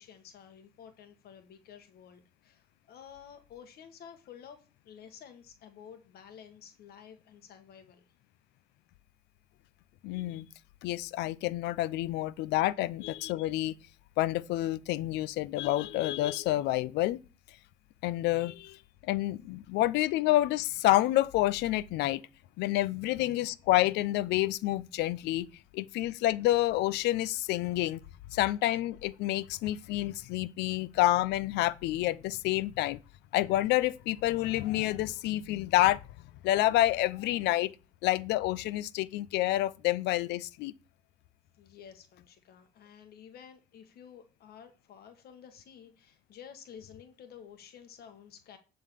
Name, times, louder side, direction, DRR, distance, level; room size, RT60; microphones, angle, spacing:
voice 1, 0.0-8.0 41.6-48.6, left 8 dB, 65° left, 1.5 m, -52 dB
voice 2, 10.0-10.5 10.8-13.7 14.2-17.2 18.0-18.8 19.1-22.2 22.6-25.5 25.7-28.0 28.3-33.0 33.3-36.0 36.4-37.7 38.0-40.7, left 15 dB, 85° left, 0.6 m, -28 dB
11.0 x 3.9 x 6.9 m
cardioid pair, 110°, 17 cm